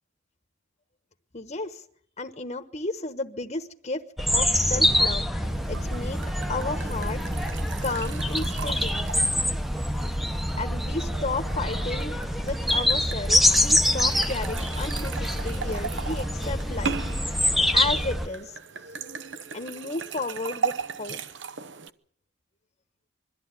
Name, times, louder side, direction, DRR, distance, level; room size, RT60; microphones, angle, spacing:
voice 1, 1.3-1.8 2.2-4.0 4.3-6.2 6.5-7.5 7.8-9.1 10.6-12.1 12.4-17.5 17.7-18.6 19.5-21.2, left 3 dB, 35° left, 7 dB, 1.1 m, -33 dB
sound 1, 4.2-18.3, left 1 dB, ahead, 0.8 m, -25 dB
sound 2, 5.4-21.9, right 6 dB, 60° right, 0.9 m, -38 dB
22.5 x 14.0 x 9.7 m, 0.65 s
head